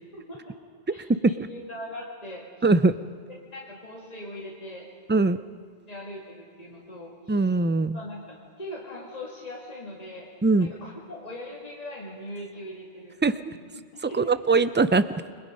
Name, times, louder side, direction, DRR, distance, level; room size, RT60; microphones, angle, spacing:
voice 1, 0.1-0.6 0.9-2.8 3.3-4.9 5.9-7.5 7.9-13.2 13.5-14.3, left 1 dB, 35° left, -4 dB, 3.0 m, -41 dB
voice 2, 0.9-1.5 2.6-2.9 5.1-5.4 7.3-8.0 10.4-10.7 13.2-13.5 14.0-15.3, right 3 dB, 15° right, 13 dB, 0.3 m, -22 dB
29.5 x 21.5 x 5.4 m, 2.3 s
omnidirectional pair, 1.1 m